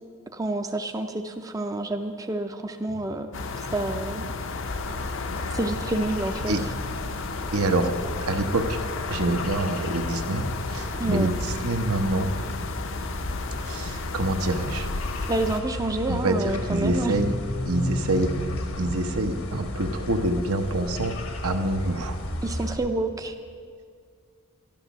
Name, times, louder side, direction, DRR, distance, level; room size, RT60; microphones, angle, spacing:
voice 1, 0.3-3.3 3.7-4.3 5.5-6.5 11.0-11.3 15.3-17.2 22.4-23.3, right 2 dB, 15° right, 6 dB, 0.4 m, -28 dB
sound 1, 3.3-15.6, left 4 dB, 60° left, 0.6 m, -33 dB
sound 2, 4.7-22.8, left 1 dB, 75° left, 1.2 m, -34 dB
voice 2, 7.5-7.9 8.3-8.8 9.1-12.3 13.6-14.9 16.1-17.3 17.7-18.3 18.8-21.1 21.4-22.2, right 2 dB, 85° right, 5 dB, 1.0 m, -26 dB
12.0 x 10.5 x 6.0 m, 2.2 s
head